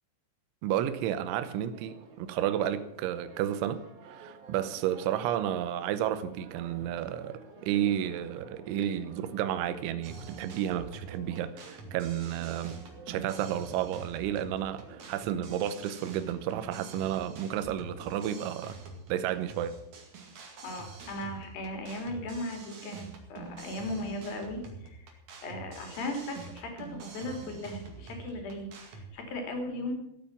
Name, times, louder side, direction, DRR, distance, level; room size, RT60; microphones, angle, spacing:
voice 1, 0.6-12.8 13.1-18.8 19.1-19.8, right 11 dB, 80° right, 3.3 m, -32 dB
Church bell, 0.7-19.0, right 4 dB, 65° right, 4.2 m, -52 dB
sound 1, 10.0-29.1, right 4 dB, 50° right, 2.7 m, -46 dB
voice 2, 20.6-25.1 25.4-29.9, left 1 dB, 55° left, 4.1 m, -37 dB
15.5 x 8.9 x 7.2 m
omnidirectional pair, 5.5 m